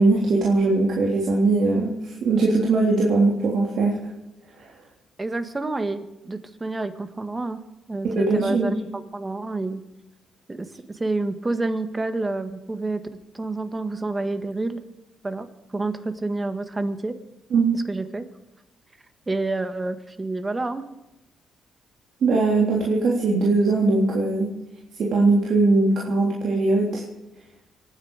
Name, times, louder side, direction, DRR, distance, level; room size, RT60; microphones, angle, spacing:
voice 1, 0.0-4.0 8.0-8.7 17.5-17.8 22.2-24.5 25.0-27.0, right 3 dB, 65° right, -3 dB, 3.4 m, -20 dB
voice 2, 5.2-7.6 7.9-9.8 10.5-13.0 13.3-14.8 15.2-15.5 15.7-17.2 17.7-18.3 19.3-20.8, right 2 dB, 20° right, 9 dB, 1.7 m, -28 dB
25.5 x 9.9 x 5.0 m, 0.94 s
cardioid pair, 90°, 0 cm